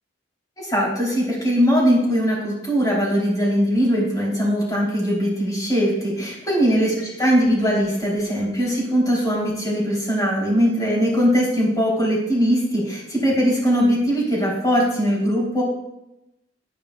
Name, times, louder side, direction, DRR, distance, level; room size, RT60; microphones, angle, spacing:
voice 1, 0.6-15.6, equal, 20° left, -5 dB, 3.1 m, -20 dB
10.0 x 8.9 x 2.3 m, 0.91 s
head